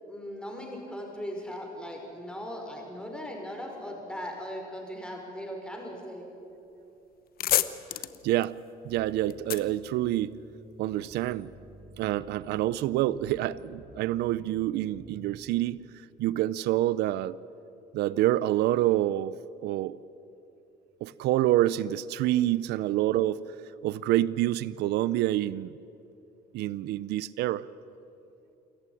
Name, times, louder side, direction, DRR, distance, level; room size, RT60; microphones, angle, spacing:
voice 1, 0.1-6.2, equal, 5° left, 1 dB, 5.8 m, -38 dB
sound 1, 6.7-6.8 7.1-10.7, left 12 dB, 60° left, 1.0 m, -31 dB
voice 2, 8.2-8.6 8.8-10.4 10.8-11.5 12.0-15.8 16.2-17.4 17.9-19.4 19.6-20.0 21.0-23.4 23.8-25.7 26.5-27.7, right 14 dB, 80° right, 19 dB, 0.6 m, -27 dB
sound 2, 8.9-15.4, right 1 dB, 25° right, 6.3 m, -51 dB
27.5 x 14.5 x 10.0 m, 2.8 s
cardioid pair, 110°, 17 cm